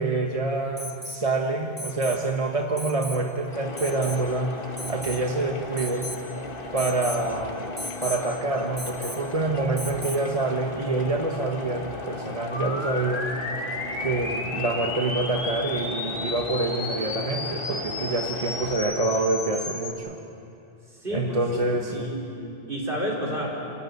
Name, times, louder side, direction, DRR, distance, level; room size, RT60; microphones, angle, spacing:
voice 1, 0.0-4.6 4.9-6.1 6.7-7.7 8.0-13.3 14.0-20.2 21.1-22.1, right 2 dB, 35° right, 1 dB, 1.2 m, -26 dB
Alarm, 0.8-1.2 1.8-2.2 2.8-3.2 3.8-4.2 4.8-5.3 5.8-6.2 6.8-7.2 7.8-8.2 8.8-9.3 9.8-10.3 12.0-12.1, left 1 dB, 10° left, 1.9 m, -37 dB
sound 1, 3.5-18.7, left 2 dB, 55° left, 1.7 m, -37 dB
sound 2, 12.5-19.9, left 3 dB, 75° left, 2.1 m, -33 dB
voice 2, 21.0-21.4 21.7-23.6, equal, 55° right, -3 dB, 5.1 m, -31 dB
28.5 x 14.0 x 9.4 m, 2.8 s
omnidirectional pair, 1.1 m